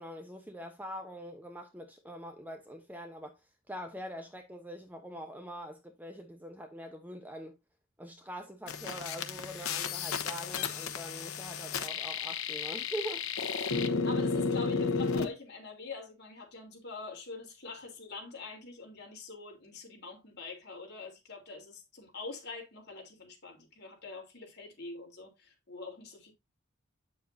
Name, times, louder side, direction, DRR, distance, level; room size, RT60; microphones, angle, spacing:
voice 1, 0.0-7.6 8.0-13.2, equal, 10° right, 0.8 m, -43 dB
sound 1, 8.7-15.3, left 5 dB, 85° left, 1.0 m, -33 dB
voice 2, 14.0-26.3, left 3 dB, 50° left, 3.3 m, -45 dB
8.5 x 7.4 x 2.7 m
head